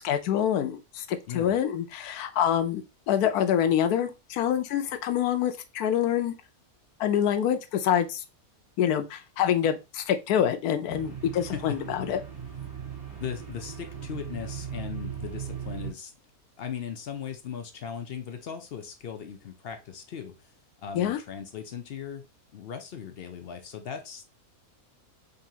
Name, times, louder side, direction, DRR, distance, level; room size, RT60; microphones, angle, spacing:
voice 1, 0.0-6.3 7.0-8.2 8.8-12.2 20.9-21.2, left 9 dB, 85° left, 1.1 m, -26 dB
sound 1, 10.9-15.9, right 8 dB, 70° right, 2.7 m, -38 dB
voice 2, 11.4-11.8 13.2-16.1 16.6-20.5 20.8-24.3, left 8 dB, 65° left, 0.6 m, -38 dB
5.2 x 2.7 x 2.7 m
omnidirectional pair, 1.6 m